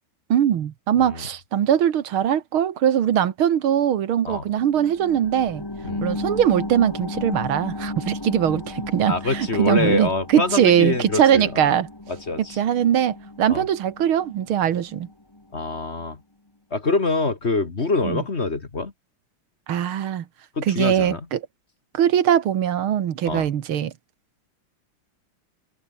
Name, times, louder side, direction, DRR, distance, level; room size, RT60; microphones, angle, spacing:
voice 1, 0.3-5.6 6.0-11.9 12.6-15.1 18.0-18.2 19.7-20.2 20.7-21.4 21.9-23.9, right 9 dB, 80° right, 2.2 m, -21 dB
sound 1, 4.5-15.6 16.0-16.1, left 2 dB, 10° left, 1.8 m, -35 dB
voice 2, 9.1-11.7 12.1-12.6 13.5-13.7 15.5-16.2 16.7-18.9 20.6-21.3 23.3-23.5, left 3 dB, 30° left, 1.9 m, -25 dB
omnidirectional pair, 2.3 m